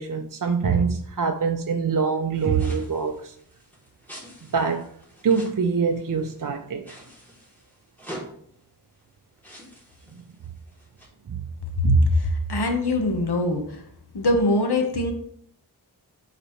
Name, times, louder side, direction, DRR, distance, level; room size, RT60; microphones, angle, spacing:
voice 1, 0.0-3.3 4.5-4.9 5.2-6.8 11.3-11.4 11.8-12.1, right 5 dB, 50° right, 0.6 m, -24 dB
sound 1, 2.3-6.5 6.8-8.3 9.0-9.1 9.4-11.1, equal, 5° left, 2.6 m, -45 dB
voice 2, 11.9-13.8 14.1-15.1, left 2 dB, 70° left, 1.2 m, -22 dB
9.9 x 4.0 x 3.1 m
wide cardioid pair, 60°, 41 cm